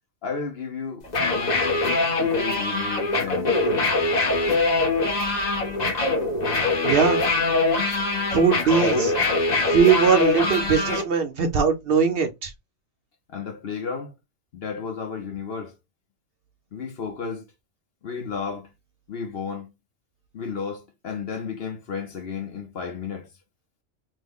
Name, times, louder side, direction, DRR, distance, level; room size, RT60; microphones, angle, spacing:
voice 1, 0.2-1.0 1.3-1.8 2.2-3.7 13.3-14.1 14.5-15.7 16.7-17.4 18.0-18.7 19.1-19.7 20.3-23.3, left 6 dB, 55° left, 1.0 m, -33 dB
sound 1, 1.0-11.0, left 2 dB, 40° left, 0.9 m, -23 dB
voice 2, 6.8-7.2 8.3-9.1 9.7-12.5, right 6 dB, 60° right, 0.7 m, -20 dB
3.2 x 2.2 x 3.4 m
omnidirectional pair, 1.3 m